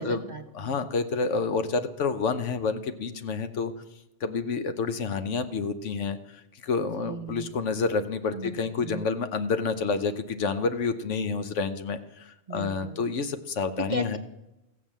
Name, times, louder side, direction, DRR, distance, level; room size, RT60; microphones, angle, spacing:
voice 1, 0.0-0.7 6.8-7.5 8.3-8.5 8.8-9.0 12.5-13.0 13.8-14.2, right 3 dB, 50° right, 8 dB, 0.6 m, -36 dB
voice 2, 0.5-3.7 4.2-6.2 6.6-14.2, left 4 dB, 70° left, 10 dB, 1.2 m, -29 dB
15.0 x 7.3 x 7.3 m, 0.94 s
omnidirectional pair, 1.3 m